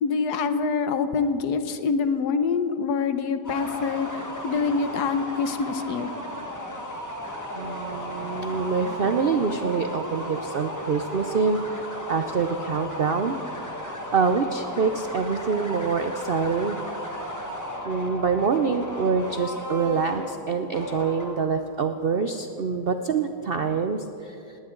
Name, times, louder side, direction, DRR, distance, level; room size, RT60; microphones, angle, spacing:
voice 1, 0.0-6.1, left 5 dB, 75° left, 10 dB, 1.4 m, -25 dB
sound 1, 3.4-21.6, equal, 10° left, 1.5 m, -35 dB
voice 2, 7.5-11.8 12.1-13.4 13.8-16.8 17.8-24.6, right 5 dB, 65° right, 7 dB, 0.5 m, -25 dB
19.0 x 18.0 x 3.8 m, 2.8 s
omnidirectional pair, 1.8 m